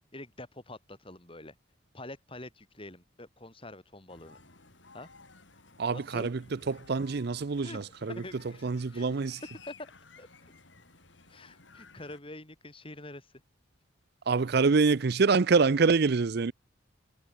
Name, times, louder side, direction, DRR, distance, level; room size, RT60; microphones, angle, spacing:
voice 1, 0.1-1.5 1.9-4.4 4.9-5.1 5.9-6.3 7.6-7.8 8.1-8.6 8.9-9.2 9.7-9.9 10.2-10.3 11.3-13.4, left 2 dB, 30° left, 4.5 m, -45 dB
sound 1, 4.1-12.2, left 4 dB, 75° left, 6.1 m, -55 dB
voice 2, 5.8-6.4 6.7-8.2 8.6-9.4 14.3-16.5, right 4 dB, 55° right, 0.5 m, -25 dB
head